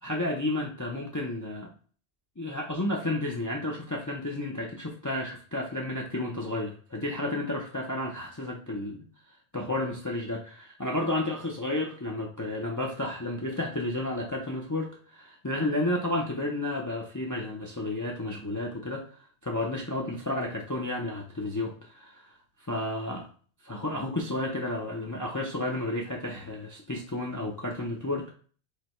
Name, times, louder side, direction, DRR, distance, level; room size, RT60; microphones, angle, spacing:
voice 1, 0.0-1.7 2.4-9.1 9.5-23.2 23.6-28.3, left 1 dB, 20° left, -1 dB, 0.6 m, -32 dB
4.9 x 2.3 x 4.3 m, 0.43 s
omnidirectional pair, 1.1 m